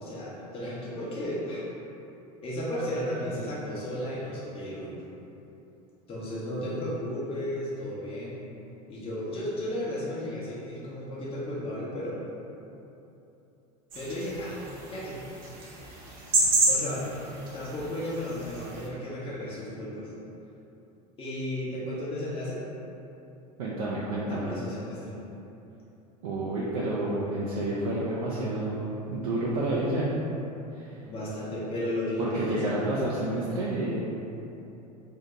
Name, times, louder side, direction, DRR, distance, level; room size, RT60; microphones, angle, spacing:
voice 1, 0.0-1.6 2.4-4.9 6.1-8.4 8.9-12.2 13.9-14.6 14.8-15.2 16.7-17.1 17.5-20.1 21.2-22.6 24.3-25.2 31.0-32.8, left 1 dB, 30° left, -7 dB, 0.8 m, -34 dB
sound 1, 13.9-18.9, right 2 dB, 45° right, 0.9 m, -30 dB
voice 2, 23.6-24.5 26.2-30.1 30.7-31.0 32.2-34.0, right 2 dB, 65° right, -7 dB, 0.5 m, -30 dB
2.8 x 2.7 x 3.4 m, 3.0 s
figure-of-eight pair, 75°, 20 cm